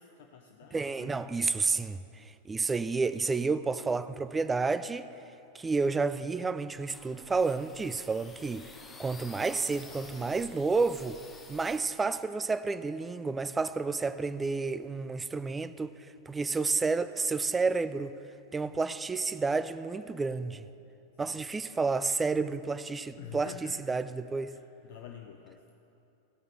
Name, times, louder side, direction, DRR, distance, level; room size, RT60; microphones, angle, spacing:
voice 1, 0.0-1.2 21.2-21.4 23.2-23.8 24.5-25.6, left 9 dB, 50° left, 0.5 m, -48 dB
voice 2, 0.7-2.0 2.5-5.1 5.5-8.7 9.0-11.2 11.5-16.0 16.3-18.1 18.5-20.6 21.2-24.6, right 4 dB, 15° right, 0.3 m, -30 dB
sound 1, 6.8-11.8, left 3 dB, 15° left, 0.8 m, -50 dB
15.5 x 8.6 x 3.2 m
figure-of-eight pair, 90°, 0 cm